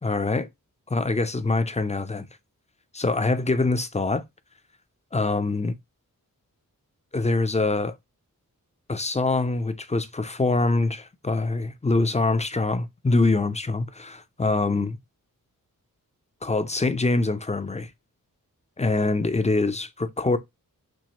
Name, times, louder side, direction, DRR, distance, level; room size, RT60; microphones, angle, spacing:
voice 1, 0.0-0.5 0.9-2.3 2.9-4.2 5.1-5.7 7.1-7.9 8.9-15.0 16.4-17.9 18.8-20.4, left 3 dB, 20° left, 0.6 m, -24 dB
6.2 x 2.1 x 2.9 m
cardioid pair, 70°, 35 cm